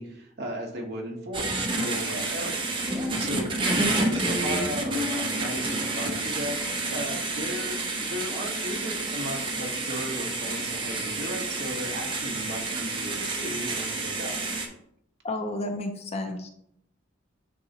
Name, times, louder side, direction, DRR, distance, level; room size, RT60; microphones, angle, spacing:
voice 1, 0.0-3.5 3.7-6.6 6.9-14.4, equal, 50° right, 0 dB, 1.3 m, -36 dB
sound 1, 1.3-14.7, right 2 dB, 25° right, 0.8 m, -29 dB
voice 2, 15.2-16.5, left 1 dB, 30° left, 5 dB, 0.6 m, -31 dB
8.5 x 3.8 x 3.0 m, 0.74 s
head